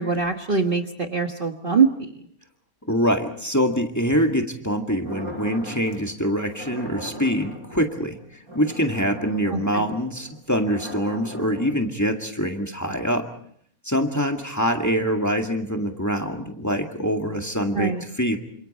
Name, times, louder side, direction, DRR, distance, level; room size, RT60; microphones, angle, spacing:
voice 1, 0.0-2.1 9.5-9.8 17.7-18.0, right 5 dB, 40° right, 4 dB, 1.5 m, -23 dB
voice 2, 2.9-8.2 8.5-13.3 13.8-18.4, equal, 10° left, 3 dB, 2.0 m, -24 dB
sound 1, 5.0-6.1 6.5-11.7, equal, 85° right, 7.7 m, -39 dB
28.5 x 27.0 x 4.3 m, 0.62 s
omnidirectional pair, 1.5 m